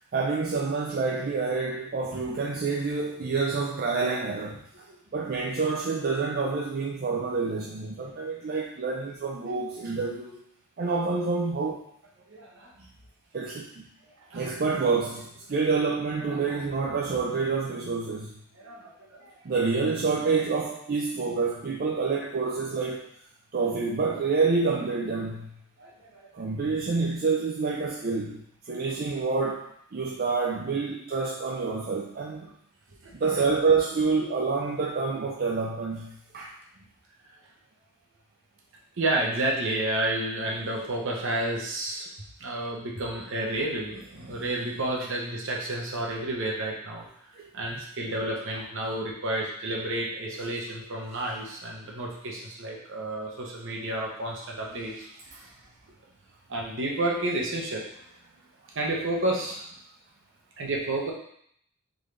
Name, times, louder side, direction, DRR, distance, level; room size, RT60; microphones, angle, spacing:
voice 1, 0.1-4.9 5.1-10.4 10.8-11.9 13.3-13.9 14.3-18.4 19.4-23.1 23.5-25.5 26.3-32.5 33.1-36.5, right 4 dB, 45° right, -2 dB, 0.5 m, -28 dB
voice 2, 12.3-12.9 14.0-14.5 16.3-16.9 18.6-19.3 25.8-26.4 28.9-29.0 33.0-33.4 36.8-36.9 39.0-42.1 42.4-47.1 47.5-55.5 56.5-57.9 58.7-59.7 60.6-61.1, right 1 dB, 60° right, -1 dB, 1.0 m, -31 dB
3.8 x 3.8 x 3.3 m, 0.69 s
head